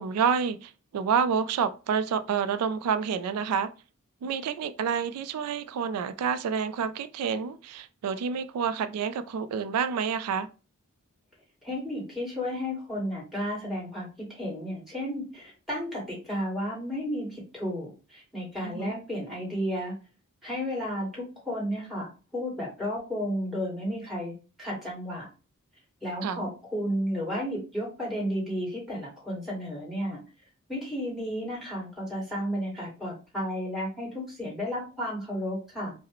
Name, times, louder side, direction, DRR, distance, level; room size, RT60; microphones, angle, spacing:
voice 1, 0.0-3.7 4.2-10.5 18.6-18.9 26.2-26.4, right 6 dB, 90° right, 0.3 m, -28 dB
voice 2, 11.6-19.9 20.4-24.3 24.6-25.3 26.0-30.2 30.7-35.9, equal, ahead, 1.9 m, -33 dB
4.8 x 2.0 x 3.0 m
head